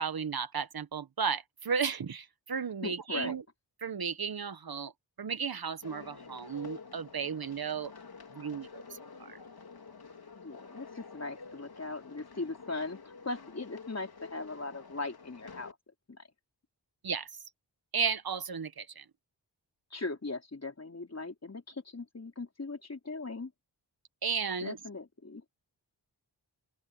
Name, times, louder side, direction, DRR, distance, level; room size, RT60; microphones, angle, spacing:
voice 1, 0.0-3.4 3.8-4.9 5.2-7.9 8.3-8.8 9.2-9.4 17.0-17.3 17.9-19.0 24.2-24.8, right 6 dB, 55° right, 1.2 m, -34 dB
voice 2, 2.8-3.3 10.3-15.8 16.1-16.2 19.9-23.5 24.6-25.5, left 3 dB, 35° left, 4.4 m, -39 dB
sound 1, 5.8-15.7, left 5 dB, 55° left, 3.2 m, -49 dB
open air
cardioid pair, 65°, 43 cm